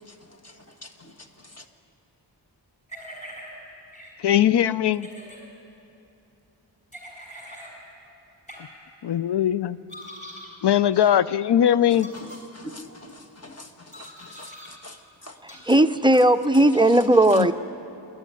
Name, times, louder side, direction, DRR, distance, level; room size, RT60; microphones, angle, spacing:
sound 1, 2.9-3.5 3.9-4.1 4.9-5.4 6.9-7.7 8.5-8.6 9.9-10.5 10.9-11.1 11.9-12.4 13.9-14.7 15.5-15.6, equal, 15° left, 5.2 m, -42 dB
voice 1, 4.2-5.1 9.0-9.8 10.6-12.1 17.3-17.5, left 10 dB, 65° left, 0.6 m, -20 dB
voice 2, 12.2-13.7 13.9-15.0 15.2-15.3, left 1 dB, 35° left, 1.4 m, -43 dB
voice 3, 15.7-17.5, right 1 dB, 10° right, 0.5 m, -17 dB
27.5 x 11.0 x 9.5 m
wide cardioid pair, 110°, 44 cm